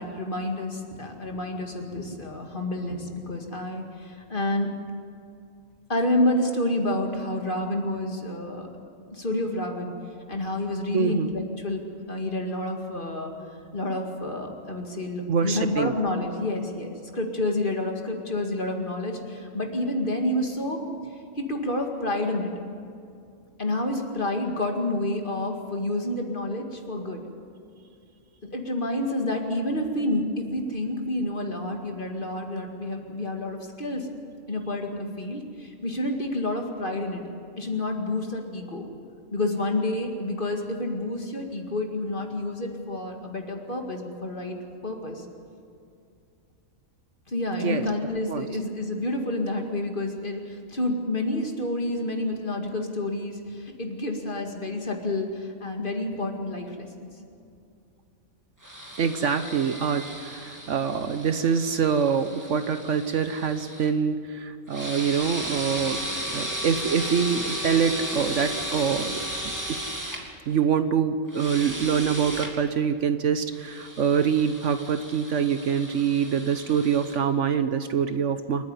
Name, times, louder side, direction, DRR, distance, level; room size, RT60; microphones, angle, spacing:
voice 1, 0.0-4.7 5.9-8.7 9.1-9.9 10.3-13.3 13.7-20.8 21.4-22.5 23.6-27.2 28.5-34.1 34.5-37.2 37.6-38.9 39.3-44.6 44.8-45.2 47.3-57.1, left 1 dB, 35° left, 2 dB, 2.2 m, -29 dB
voice 2, 10.9-11.3 15.3-15.9 47.6-47.9 48.3-48.5 56.1-56.3 59.0-69.9 70.5-78.6, right 7 dB, 65° right, 10 dB, 1.1 m, -25 dB
sound 1, 58.6-63.9 64.7-70.2 71.3-72.5 73.5-77.2, equal, 15° right, 2.7 m, -35 dB
28.0 x 9.8 x 9.7 m, 2.4 s
omnidirectional pair, 1.4 m